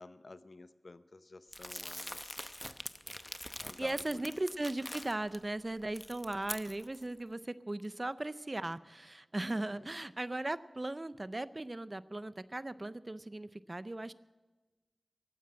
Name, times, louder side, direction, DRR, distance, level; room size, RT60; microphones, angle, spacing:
voice 1, 0.0-2.6 3.6-4.2 9.8-9.9, left 3 dB, 60° left, 13 dB, 0.7 m, -52 dB
Crumpling crinkling, 1.5-5.4 5.8-7.0, left 1 dB, 15° left, 0.8 m, -44 dB
voice 2, 3.8-14.1, right 2 dB, 35° right, 16 dB, 0.5 m, -38 dB
15.5 x 9.3 x 8.7 m, 1.2 s
wide cardioid pair, 50°, 0 cm